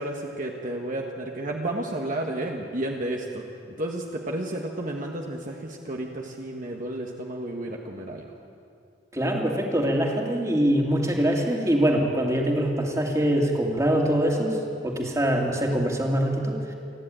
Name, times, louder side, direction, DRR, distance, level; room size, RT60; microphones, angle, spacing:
voice 1, 0.0-3.4 3.8-8.3, right 1 dB, 45° right, 0 dB, 1.6 m, -32 dB
voice 2, 9.1-16.7, equal, 15° right, 0 dB, 2.6 m, -24 dB
28.5 x 11.0 x 9.0 m, 2.4 s
head